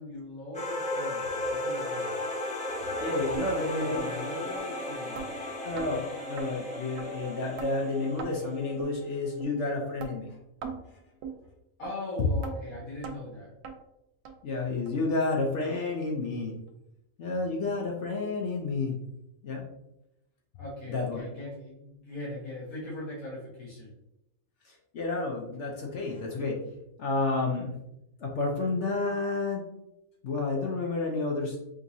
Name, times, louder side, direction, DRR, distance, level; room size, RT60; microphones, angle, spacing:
voice 1, 0.0-2.2 3.3-5.4 11.8-13.5 20.6-23.9, left 1 dB, 75° left, -6 dB, 1.5 m, -40 dB
sound 1, 0.5-9.1, left 1 dB, 5° left, 0.9 m, -35 dB
voice 2, 2.8-4.1 5.6-10.4 14.4-16.6 17.2-19.0 19.4-19.7 20.9-21.3 24.6-26.6 27.0-27.7 28.2-29.6 30.2-31.6, left 3 dB, 60° left, 0 dB, 0.9 m, -30 dB
sound 2, 3.3-3.5 3.9-4.1 4.6-4.7 5.2-5.3 5.8-5.9 6.4-6.5 7.0-7.1 7.6-7.7 8.2-8.3 8.8-8.9 9.4-9.5 10.0-10.1 10.6-10.8 11.2-11.4 11.8-11.9 12.4-12.6 13.0-13.2 13.6-13.8 14.2-14.3 14.9-15.0 15.5-15.6 16.1-16.2, right 6 dB, 85° right, 1.1 m, -38 dB
5.2 x 2.9 x 2.7 m, 0.86 s
omnidirectional pair, 1.5 m